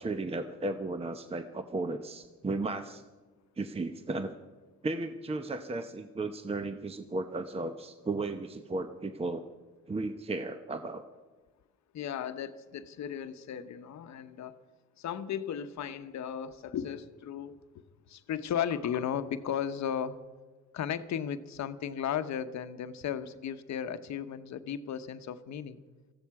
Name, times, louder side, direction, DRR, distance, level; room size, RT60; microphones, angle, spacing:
voice 1, 0.0-3.0 3.6-4.3 4.8-9.4 9.9-11.0, right 2 dB, 20° right, 0.8 m, -35 dB
voice 2, 11.9-14.6 15.0-17.6 18.1-20.2 20.7-25.8, left 8 dB, 65° left, 1.0 m, -35 dB
19.0 x 15.0 x 4.8 m
cardioid pair, 90°, 30 cm